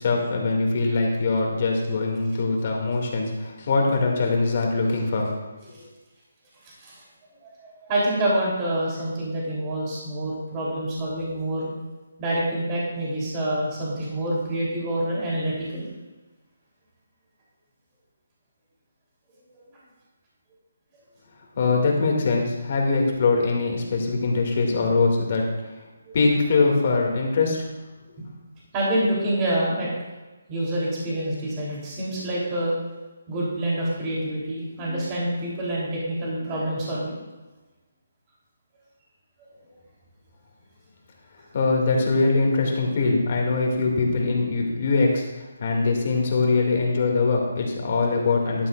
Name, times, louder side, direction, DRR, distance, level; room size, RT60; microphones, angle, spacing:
voice 1, 0.0-5.9 21.6-25.4 26.1-27.7 28.1-28.2 41.5-48.7, left 3 dB, 45° left, 0 dB, 2.4 m, -22 dB
voice 2, 7.4-11.7 12.2-15.9 26.0-26.1 28.2-28.3 28.7-29.9 30.5-32.7 33.3-37.1, right 1 dB, 20° right, -6 dB, 3.4 m, -27 dB
12.5 x 11.5 x 2.5 m, 1.2 s
hypercardioid pair, 165°, 0 cm